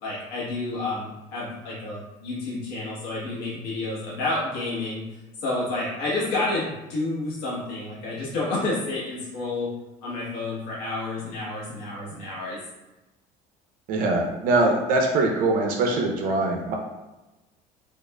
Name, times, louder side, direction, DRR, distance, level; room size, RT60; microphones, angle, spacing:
voice 1, 0.0-5.0 5.4-9.7 10.0-12.6, left 2 dB, 85° left, -7 dB, 1.1 m, -30 dB
voice 2, 13.9-16.7, right 2 dB, 60° right, 1 dB, 0.5 m, -22 dB
4.8 x 2.4 x 2.2 m, 1.1 s
cardioid pair, 140°, 16 cm